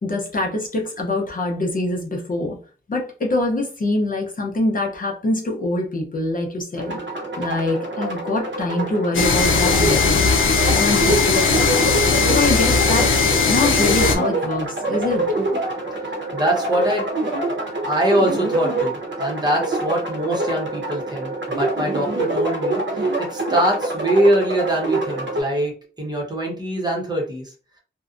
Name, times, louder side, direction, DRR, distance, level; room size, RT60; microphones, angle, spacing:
voice 1, 0.0-2.6 2.9-6.9 7.4-10.2 10.7-11.9 12.3-13.2 13.4-15.2, left 2 dB, 45° left, -1 dB, 0.6 m, -24 dB
sound 1, 6.8-25.4, right 2 dB, 70° right, 0.8 m, -25 dB
sound 2, 9.1-14.2, left 4 dB, 90° left, 0.5 m, -18 dB
voice 2, 16.3-17.0 17.8-25.7 26.0-27.5, right 1 dB, 20° right, -2 dB, 0.8 m, -23 dB
2.6 x 2.1 x 2.4 m, 0.39 s
wide cardioid pair, 130°, 20 cm